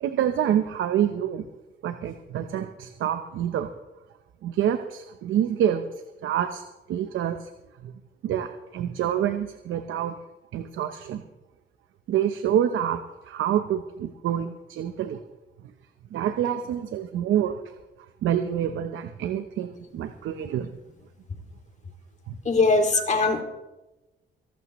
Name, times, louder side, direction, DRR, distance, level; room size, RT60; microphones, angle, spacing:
voice 1, 0.0-1.5 1.8-3.7 4.4-5.8 6.2-6.6 6.9-7.5 7.8-7.9 8.2-10.1 10.5-11.2 12.1-15.2 16.1-17.5 18.2-20.7 22.3-22.4 22.9-23.1, right 10 dB, 80° right, 8 dB, 0.9 m, -27 dB
voice 2, 22.5-23.4, left 3 dB, 35° left, 4 dB, 2.5 m, -21 dB
23.0 x 12.5 x 3.1 m, 1.0 s
cardioid pair, 90°, 20 cm